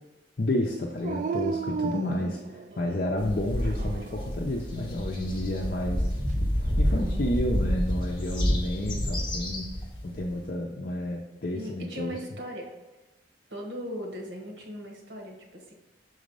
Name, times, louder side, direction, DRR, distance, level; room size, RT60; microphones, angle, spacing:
voice 1, 0.4-2.4 2.8-6.1 6.8-9.7 10.0-12.2, left 1 dB, 55° left, -1 dB, 0.7 m, -30 dB
Dog, 1.0-2.9 3.6-4.4 6.6-7.5, right 5 dB, 45° right, 0.3 m, -34 dB
voice 2, 2.7-3.0 11.5-12.7 13.5-15.7, equal, 85° right, 1 dB, 1.5 m, -38 dB
sound 1, 3.2-10.3, equal, 25° left, 1.3 m, -29 dB
6.3 x 4.0 x 5.3 m, 1.1 s
head